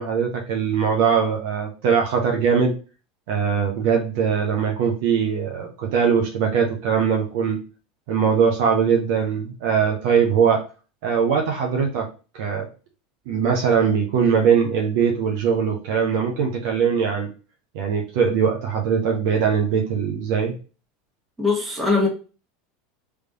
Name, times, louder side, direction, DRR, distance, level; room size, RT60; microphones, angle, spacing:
voice 1, 0.0-2.7 3.3-7.6 8.1-10.6 11.0-12.1 12.3-12.7 13.3-17.3 17.7-20.5, right 6 dB, 60° right, 1 dB, 1.0 m, -21 dB
voice 2, 21.4-22.1, left 3 dB, 10° right, -2 dB, 1.8 m, -21 dB
3.5 x 3.3 x 2.8 m, 0.34 s
figure-of-eight pair, 80°, 0 cm